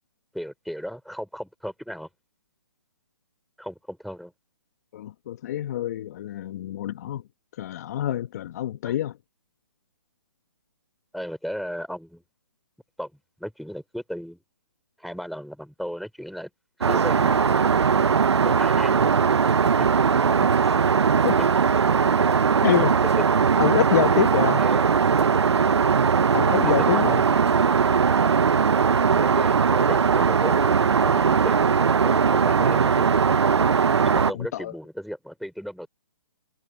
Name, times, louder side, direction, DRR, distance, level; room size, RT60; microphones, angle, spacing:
voice 1, 0.3-2.1 3.6-4.3 8.9-9.0 11.1-12.2 13.0-13.1 13.4-14.4 15.0-16.5 16.8-17.5 18.4-19.1 20.6-20.7 24.6-24.9 26.6-27.2 29.1-31.7 32.0-33.4 34.0-35.9, equal, ahead, 3.3 m, -35 dB
voice 2, 4.9-7.2 7.6-9.1 21.2-21.4 22.6-22.9 23.6-24.6 26.3-27.2 34.3-34.7, left 12 dB, 40° left, 1.2 m, -26 dB
Aircraft, 16.8-34.3, right 6 dB, 85° right, 0.6 m, -20 dB
hypercardioid pair, 155°, 14 cm